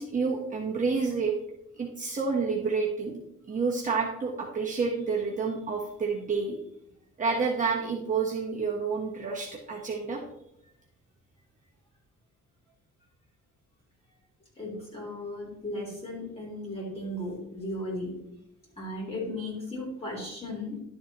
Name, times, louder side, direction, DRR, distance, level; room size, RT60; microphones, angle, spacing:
voice 1, 0.0-1.3 1.8-3.2 3.5-6.6 7.2-10.2, right 4 dB, 25° right, -3 dB, 1.3 m, -29 dB
voice 2, 14.6-18.1 18.8-20.8, left 1 dB, 20° left, -3 dB, 3.7 m, -36 dB
11.5 x 7.1 x 3.1 m, 0.79 s
cardioid pair, 150°, 29 cm